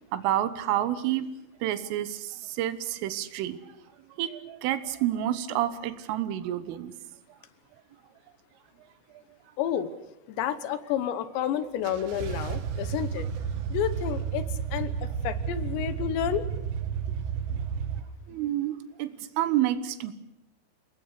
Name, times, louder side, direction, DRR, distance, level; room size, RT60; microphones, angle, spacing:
voice 1, 0.1-1.3 1.6-3.6 4.2-6.9 18.3-20.1, right 12 dB, 85° right, 12 dB, 3.7 m, -29 dB
voice 2, 9.6-9.9 10.3-13.3 13.7-16.5, left 10 dB, 75° left, 12 dB, 3.1 m, -30 dB
sound 1, 11.8-18.0, right 7 dB, 70° right, 3.4 m, -32 dB
29.0 x 19.5 x 6.7 m, 0.87 s
omnidirectional pair, 5.6 m